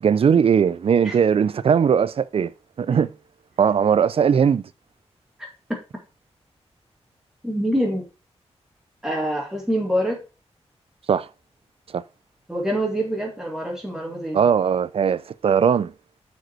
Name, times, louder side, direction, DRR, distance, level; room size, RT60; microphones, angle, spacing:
voice 1, 0.0-2.5 2.8-3.1 3.6-4.6 11.1-11.3 11.9-12.0 14.3-15.9, right 7 dB, 60° right, 0.4 m, -19 dB
voice 2, 7.4-8.1 9.0-10.2 12.5-14.4, equal, 5° right, 2.2 m, -25 dB
6.1 x 5.2 x 4.5 m
wide cardioid pair, 110°, 11 cm